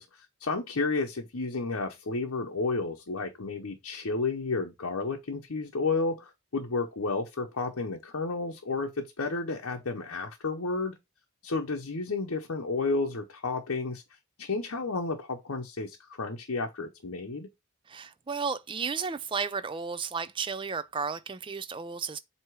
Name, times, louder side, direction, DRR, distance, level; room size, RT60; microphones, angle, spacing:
voice 1, 0.0-10.9 11.4-14.0 14.4-17.5, left 3 dB, 65° left, 0.8 m, -32 dB
voice 2, 17.9-22.2, right 5 dB, 20° right, 0.3 m, -33 dB
7.9 x 2.8 x 4.7 m
head